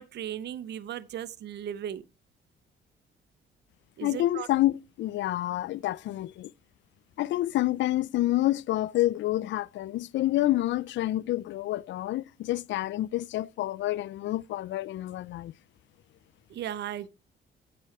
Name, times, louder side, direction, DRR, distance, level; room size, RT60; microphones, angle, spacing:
voice 1, 0.0-2.0 4.0-4.5 16.5-17.1, right 10 dB, 60° right, 0.6 m, -36 dB
voice 2, 4.0-6.5 7.2-15.5, left 15 dB, 70° left, 0.4 m, -28 dB
8.7 x 7.7 x 4.4 m
cardioid pair, 90°, 20 cm